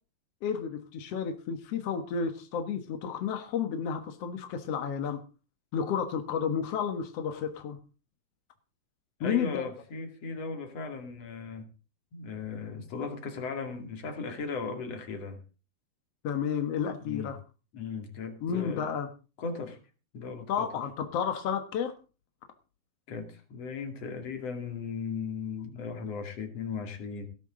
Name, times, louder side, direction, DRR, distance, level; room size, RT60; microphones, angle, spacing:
voice 1, 0.4-5.2 5.7-7.8 9.2-9.7 16.2-17.4 18.4-19.1 20.5-21.9, left 7 dB, 60° left, 6 dB, 1.6 m, -31 dB
voice 2, 9.2-11.7 12.1-15.4 17.0-17.3 17.7-18.9 19.4-19.8 20.1-20.7 23.1-27.3, left 5 dB, 45° left, 5 dB, 3.1 m, -37 dB
17.5 x 12.5 x 3.8 m, 0.34 s
omnidirectional pair, 4.5 m